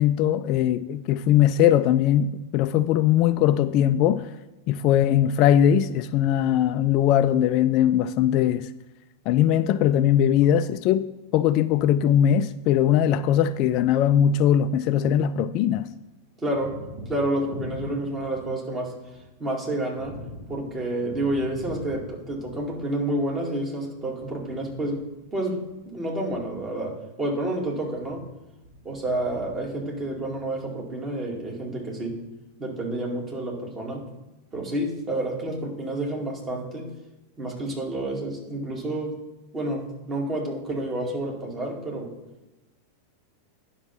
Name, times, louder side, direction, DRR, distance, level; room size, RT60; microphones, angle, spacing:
voice 1, 0.0-4.3 4.7-8.7 9.3-15.9, left 10 dB, 40° left, 0.3 m, -20 dB
Thunder, 16.0-31.0, equal, 65° right, 3.2 m, -44 dB
voice 2, 16.4-16.8 17.1-19.0 19.4-20.2 20.5-25.0 25.3-28.2 28.8-32.2 32.6-34.1 34.5-36.9 37.4-39.2 39.5-42.1, right 1 dB, 20° right, 2.2 m, -29 dB
9.7 x 5.8 x 5.4 m
figure-of-eight pair, 90°, 0 cm